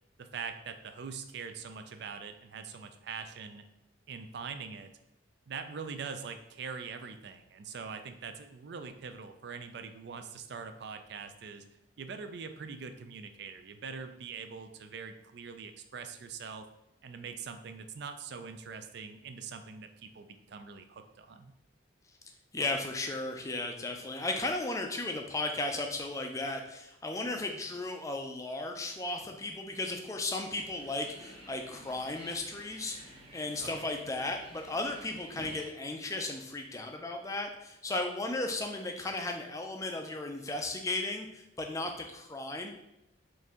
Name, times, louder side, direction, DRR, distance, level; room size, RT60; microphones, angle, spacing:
voice 1, 0.2-3.6 4.1-4.9 5.5-11.6 12.0-16.7 17.0-21.5 33.6-33.8, right 5 dB, 55° right, 8 dB, 0.4 m, -43 dB
voice 2, 22.5-42.7, left 2 dB, 15° left, 4 dB, 0.4 m, -35 dB
sound 1, 30.5-35.7, right 1 dB, 30° right, 0.7 m, -52 dB
4.5 x 2.6 x 3.6 m, 0.89 s
head